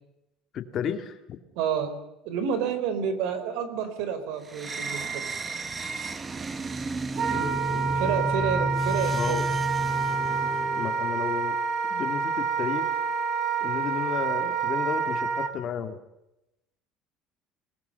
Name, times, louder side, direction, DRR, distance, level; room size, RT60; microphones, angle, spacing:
voice 1, 0.5-1.4 7.3-8.2 9.1-9.4 10.8-11.6 11.9-12.9 13.6-16.0, left 8 dB, 35° left, 7 dB, 2.3 m, -33 dB
voice 2, 1.5-5.3 7.9-9.4, right 7 dB, 70° right, 12 dB, 4.8 m, -29 dB
sound 1, 4.5-11.1, right 1 dB, 15° right, 1.1 m, -32 dB
Wind instrument woodwind instrument, 7.2-15.5, right 6 dB, 35° right, 1.9 m, -28 dB
28.0 x 19.5 x 6.8 m, 0.90 s
cardioid pair, 175°, 0 cm